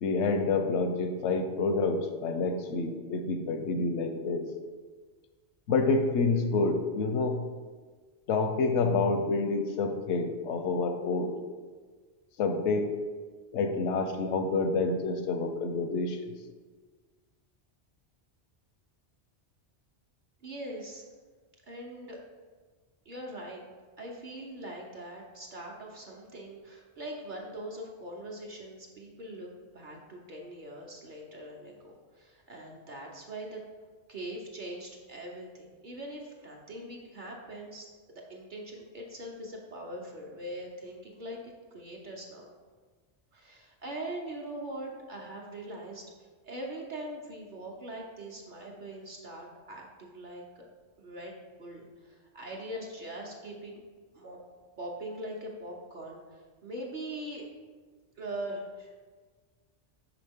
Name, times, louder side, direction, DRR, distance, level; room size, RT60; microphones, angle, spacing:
voice 1, 0.0-4.5 5.7-7.4 8.3-11.3 12.4-12.9 13.5-16.3, left 3 dB, 85° left, 6 dB, 0.9 m, -28 dB
voice 2, 20.4-21.0 21.7-22.2 23.1-23.6 24.0-33.6 34.1-41.4 41.7-42.5 43.3-46.0 46.4-50.7 51.0-53.8 54.1-54.4 54.8-57.5 58.2-58.9, right 1 dB, 50° right, -1 dB, 0.9 m, -42 dB
6.0 x 5.0 x 3.5 m, 1.5 s
omnidirectional pair, 1.2 m